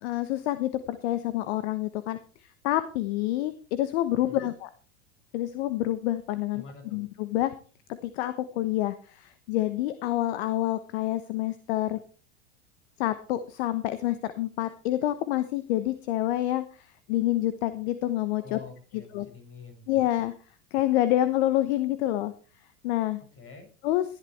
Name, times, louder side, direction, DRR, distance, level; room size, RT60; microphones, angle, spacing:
voice 1, 0.0-2.2 2.6-4.7 5.3-6.6 6.9-7.5 8.0-12.0 13.0-16.6 17.1-18.6 18.9-19.3 19.9-20.3 20.7-22.3 22.8-23.2 23.8-24.0, left 14 dB, 60° left, 13 dB, 1.2 m, -27 dB
voice 2, 4.1-4.5 6.5-7.0 18.4-19.9 23.3-23.7, left 4 dB, 35° left, 4 dB, 7.0 m, -46 dB
18.0 x 12.0 x 3.3 m, 0.38 s
hypercardioid pair, 90°, 37 cm